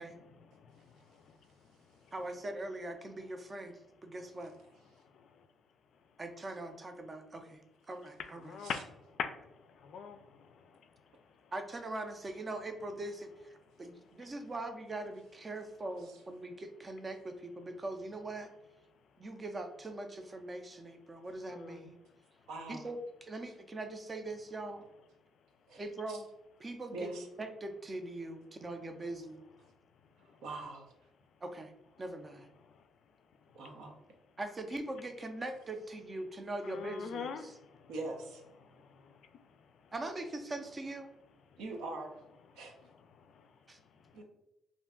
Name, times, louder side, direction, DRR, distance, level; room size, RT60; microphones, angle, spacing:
voice 1, 0.0-2.1 4.4-5.5 5.9-6.2 8.2-11.5 13.6-14.4 18.9-19.2 21.2-22.5 25.3-25.8 29.6-30.5 31.3-31.4 32.6-33.9 34.3-34.4 36.6-38.0 38.6-39.9 41.5-41.6 42.5-44.2, left 6 dB, 70° left, 8 dB, 0.3 m, -48 dB
voice 2, 2.1-4.5 6.2-7.6 7.9-8.4 11.5-13.3 13.8-18.5 19.2-22.0 22.7-24.8 25.8-26.3 26.6-27.1 27.4-29.4 31.4-31.7 32.0-32.5 34.4-37.3 39.9-41.1 43.7-43.8, right 2 dB, 30° right, 6 dB, 0.4 m, -41 dB
voice 3, 22.5-22.8 25.7-25.8 26.1-26.2 26.9-27.3 30.4-30.9 33.5-33.9 37.9-38.4 41.6-42.2 42.6-42.7 44.1-44.2, right 2 dB, 85° right, 2 dB, 0.5 m, -41 dB
2.5 x 2.2 x 3.6 m, 0.87 s
cardioid pair, 90°, 0 cm